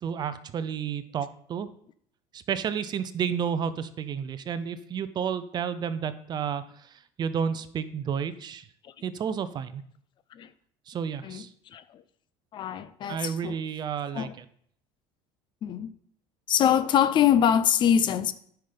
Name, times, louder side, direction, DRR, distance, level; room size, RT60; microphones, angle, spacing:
voice 1, 0.0-1.7 2.3-8.7 9.0-9.8 10.9-11.5 13.1-14.4, right 7 dB, 35° right, 0.7 m, -31 dB
voice 2, 12.5-13.6 14.1-14.3 15.6-15.9 16.5-18.3, left 9 dB, 40° left, 0.6 m, -24 dB
9.2 x 5.8 x 5.2 m
supercardioid pair, 115°, 12 cm